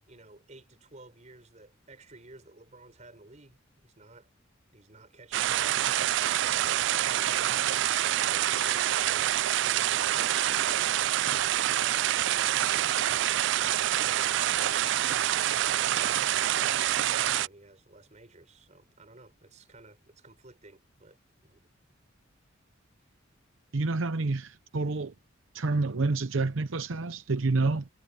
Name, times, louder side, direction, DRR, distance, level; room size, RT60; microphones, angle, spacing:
voice 1, 0.1-4.3 4.7-12.9 13.5-15.0 15.6-21.7, right 2 dB, 35° right, 5.1 m, -53 dB
sound 1, 5.3-17.5, right 12 dB, 65° right, 0.3 m, -26 dB
voice 2, 23.7-25.1 25.5-27.9, right 3 dB, 85° right, 0.8 m, -28 dB
head